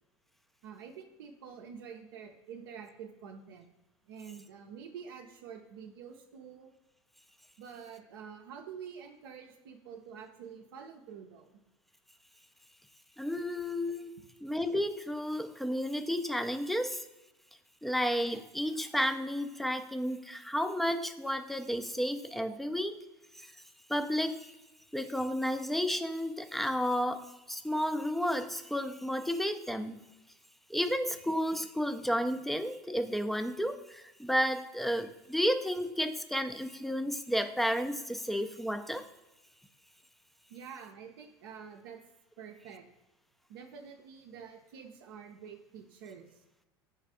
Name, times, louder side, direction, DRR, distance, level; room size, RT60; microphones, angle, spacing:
voice 1, 0.6-3.7 4.1-6.7 7.6-11.5 14.2-14.3 40.5-42.0 42.4-42.8 43.5-46.4, right 7 dB, 70° right, 2 dB, 0.5 m, -47 dB
voice 2, 13.2-17.1 17.8-23.0 23.3-23.6 23.9-24.6 24.9-30.0 30.7-39.1, equal, ahead, 8 dB, 0.4 m, -32 dB
3.4 x 3.2 x 4.7 m, 1.0 s
hypercardioid pair, 75°, 13 cm